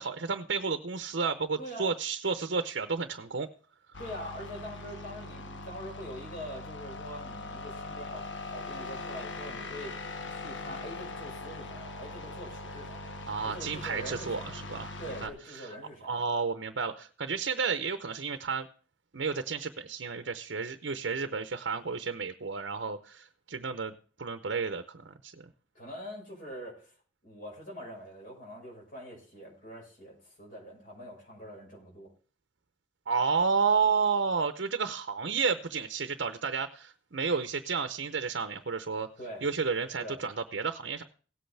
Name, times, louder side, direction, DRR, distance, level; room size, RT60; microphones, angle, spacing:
voice 1, 0.0-3.5 13.3-14.9 15.2-15.7 16.0-18.7 19.1-23.9 24.2-25.3 33.1-39.1 39.4-41.0, right 5 dB, 65° right, 9 dB, 0.7 m, -31 dB
voice 2, 1.6-1.9 4.0-10.0 10.3-13.1 13.4-14.6 15.0-16.2 25.7-26.9 27.2-32.1 39.2-39.5 40.0-40.2, equal, 45° left, -1 dB, 5.3 m, -44 dB
sound 1, 3.9-15.3, left 3 dB, 75° left, 1.3 m, -41 dB
17.5 x 7.9 x 3.3 m, 0.39 s
head